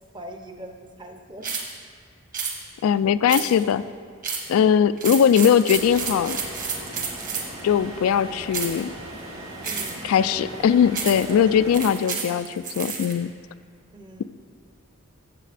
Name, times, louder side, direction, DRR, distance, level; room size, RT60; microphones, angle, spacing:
voice 1, 0.1-1.6 9.6-11.8 13.9-14.2, right 1 dB, 20° right, 5 dB, 0.6 m, -41 dB
sound 1, 1.4-1.7 2.3-2.6 3.3-3.7 4.2-4.5 5.0-7.6 8.5-8.8 9.6-10.1 10.9-11.3 11.7-13.1, right 5 dB, 40° right, 1.2 m, -30 dB
voice 2, 2.8-3.8 4.5-6.4 7.6-8.9 10.0-13.3, left 8 dB, 80° left, 14 dB, 0.3 m, -20 dB
sound 2, 5.7-11.9, right 1 dB, 75° right, 2.0 m, -38 dB
13.5 x 7.6 x 3.3 m, 2.1 s
head